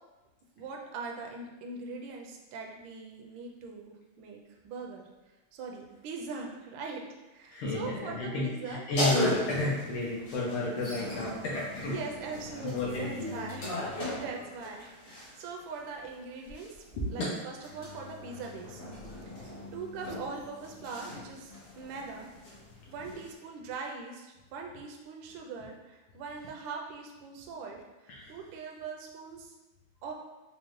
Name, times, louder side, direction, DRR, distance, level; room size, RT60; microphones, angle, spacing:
voice 1, 0.6-5.1 5.5-8.8 11.8-18.8 19.3-22.3 22.9-29.5 30.0-30.1, right 4 dB, 75° right, 0 dB, 1.2 m, -42 dB
voice 2, 7.5-12.0 12.6-13.3 14.1-14.2 17.0-17.1 23.1-23.2 28.1-28.3, left 2 dB, 80° left, -5 dB, 1.5 m, -32 dB
sound 1, 8.9-15.5 16.5-23.3, left 1 dB, 45° left, 1.0 m, -38 dB
4.9 x 2.1 x 3.0 m, 1.1 s
omnidirectional pair, 2.4 m